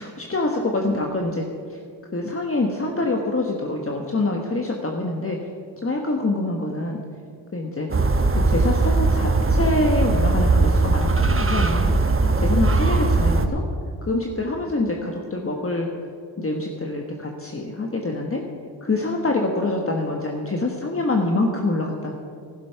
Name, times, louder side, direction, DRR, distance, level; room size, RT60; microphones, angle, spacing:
voice 1, 0.0-1.8 2.1-5.4 5.8-7.0 7.5-7.9 8.3-13.6 14.0-15.9 16.4-18.4 18.8-22.1, left 2 dB, 30° left, 1 dB, 1.4 m, -25 dB
sound 1, 7.9-13.5, right 3 dB, 25° right, 1.1 m, -19 dB
11.5 x 11.5 x 5.7 m, 2.4 s
cardioid pair, 55°, 47 cm